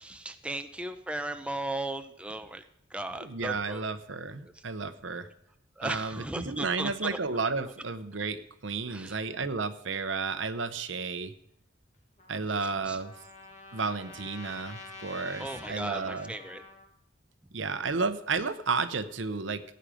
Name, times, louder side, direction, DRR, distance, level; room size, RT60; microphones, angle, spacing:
voice 1, 0.0-2.6 2.9-3.8 4.4-4.6 5.8-7.2 8.9-9.2 12.9-13.0 15.4-16.6, right 1 dB, 5° right, 8 dB, 0.6 m, -36 dB
voice 2, 3.2-5.3 5.8-11.3 12.3-13.1 13.7-16.3 17.5-19.6, right 4 dB, 85° right, 11 dB, 0.9 m, -32 dB
Trumpet, 12.2-16.9, left 2 dB, 40° left, 1.6 m, -47 dB
16.5 x 9.0 x 5.1 m, 0.77 s
head